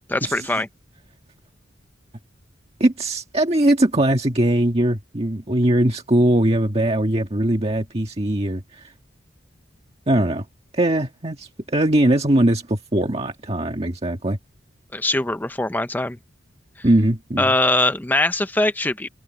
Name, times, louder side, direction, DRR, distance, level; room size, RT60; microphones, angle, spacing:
voice 1, 0.1-0.7 14.9-16.2 17.4-19.1, left 2 dB, 10° left, 0.5 m, -21 dB
voice 2, 2.8-8.9 10.1-10.5 10.7-14.4 16.8-17.5, right 1 dB, 30° right, 1.7 m, -20 dB
head